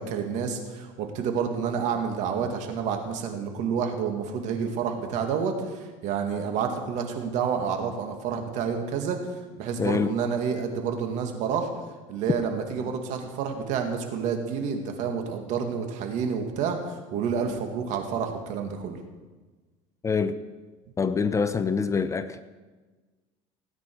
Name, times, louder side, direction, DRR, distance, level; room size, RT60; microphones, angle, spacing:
voice 1, 0.0-9.3 9.6-11.8 12.1-19.0, right 6 dB, 65° right, 4 dB, 2.2 m, -29 dB
voice 2, 9.8-10.1 20.0-20.4 21.0-22.4, left 5 dB, 20° left, 12 dB, 0.6 m, -25 dB
17.5 x 9.5 x 4.8 m, 1.3 s
supercardioid pair, 115°, 14 cm